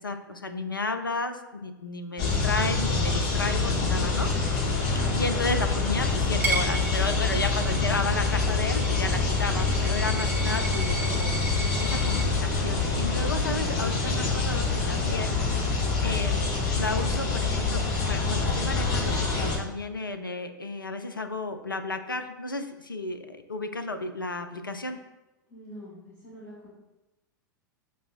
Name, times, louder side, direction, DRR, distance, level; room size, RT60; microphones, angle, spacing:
voice 1, 0.0-4.7 5.1-11.3 11.8-15.7 16.0-16.4 16.7-25.0, left 3 dB, 90° left, 7 dB, 0.4 m, -33 dB
sound 1, 2.2-19.6, left 3 dB, 40° left, 0.8 m, -26 dB
voice 2, 4.6-5.2 25.5-26.7, right 1 dB, 25° left, -9 dB, 1.2 m, -46 dB
Coin (dropping), 6.4-12.3, right 2 dB, 15° right, 0.8 m, -35 dB
6.7 x 2.3 x 2.4 m, 1.0 s
figure-of-eight pair, 95°, 11 cm